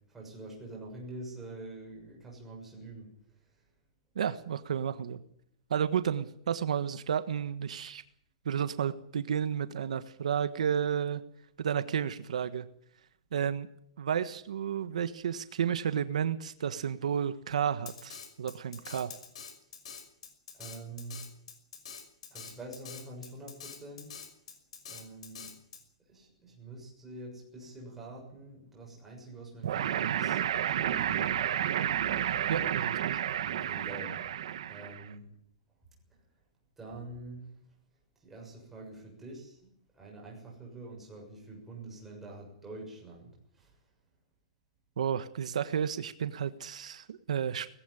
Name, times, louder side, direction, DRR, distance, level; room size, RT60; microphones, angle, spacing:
voice 1, 0.1-3.1 20.6-21.2 22.3-24.2 24.9-25.5 26.1-30.4 30.7-31.5 33.4-34.2 34.7-35.3 36.8-37.5 38.2-39.6 39.9-43.7, right 2 dB, 5° right, -2 dB, 6.8 m, -46 dB
voice 2, 4.1-5.2 5.7-8.0 8.4-11.2 11.6-12.7 13.3-13.7 14.0-19.1 32.5-33.2 45.0-47.7, right 8 dB, 85° right, 11 dB, 1.4 m, -32 dB
Drum kit, 17.9-25.8, left 7 dB, 65° left, 5.9 m, -45 dB
sound 1, 29.6-35.1, right 10 dB, 55° right, 1.4 m, -31 dB
19.5 x 16.0 x 9.9 m, 0.69 s
hypercardioid pair, 175°, 4 cm